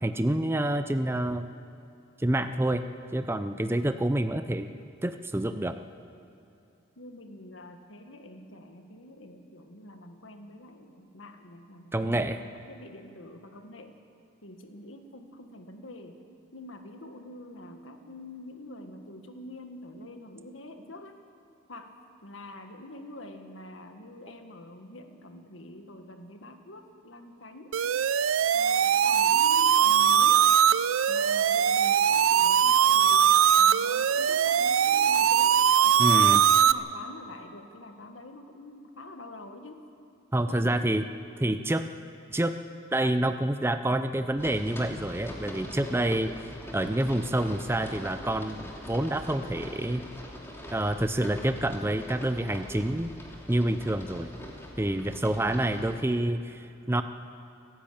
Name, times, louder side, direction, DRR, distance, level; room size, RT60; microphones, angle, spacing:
voice 1, 0.0-1.5 2.2-2.8 3.1-4.7 5.0-5.8 11.9-12.4 36.0-36.4 40.3-41.0 41.4-41.9 42.3-42.5 42.9-46.3 46.7-50.0 50.7-53.1 53.5-54.3 54.8-57.0, right 1 dB, 10° right, 9 dB, 0.5 m, -27 dB
voice 2, 7.0-13.9 14.4-16.2 16.5-21.2 21.7-22.0 22.2-27.7 28.5-30.5 31.1-39.9 40.4-40.8, left 1 dB, 65° left, 5 dB, 1.8 m, -46 dB
sound 1, 27.7-36.7, right 8 dB, 80° right, 0.5 m, -21 dB
sound 2, 44.4-55.9, equal, 10° left, 2.6 m, -42 dB
29.5 x 10.5 x 8.7 m, 2.7 s
head